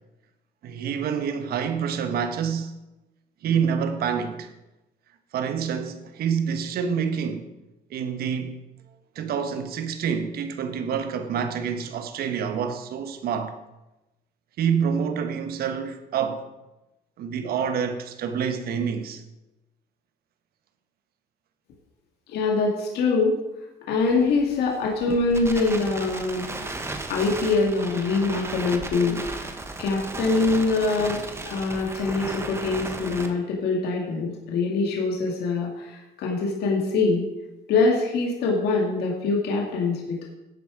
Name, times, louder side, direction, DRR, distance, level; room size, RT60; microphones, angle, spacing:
voice 1, 0.6-2.7 3.4-4.5 5.3-7.5 7.9-8.6 9.1-13.5 14.6-16.5 17.2-19.2, right 7 dB, 65° right, 1.3 m, -27 dB
voice 2, 22.3-23.4 23.9-26.5 27.1-29.5 29.8-31.2 31.5-37.2 37.7-40.3, left 3 dB, 75° left, 2.1 m, -24 dB
Crackle, 24.0-33.3, right 2 dB, 15° right, 1.3 m, -35 dB
11.5 x 8.2 x 4.9 m
cardioid pair, 110°, 17 cm